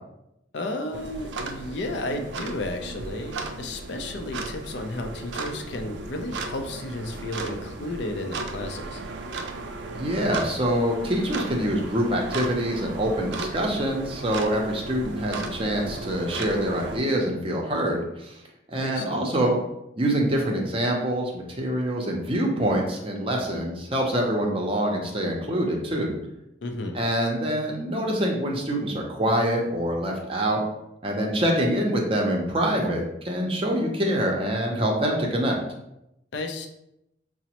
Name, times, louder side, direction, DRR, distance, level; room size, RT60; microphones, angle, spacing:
voice 1, 0.5-9.0 18.8-19.2 26.6-27.0 36.3-36.7, left 2 dB, 70° left, 4 dB, 0.5 m, -33 dB
sound 1, 0.9-17.0, right 3 dB, 75° right, 0.4 m, -35 dB
voice 2, 9.9-18.4 18.7-19.6 20.0-26.1 26.9-30.6 31.0-35.6, right 1 dB, 30° right, 0 dB, 0.6 m, -25 dB
5.0 x 2.0 x 2.9 m, 0.85 s
head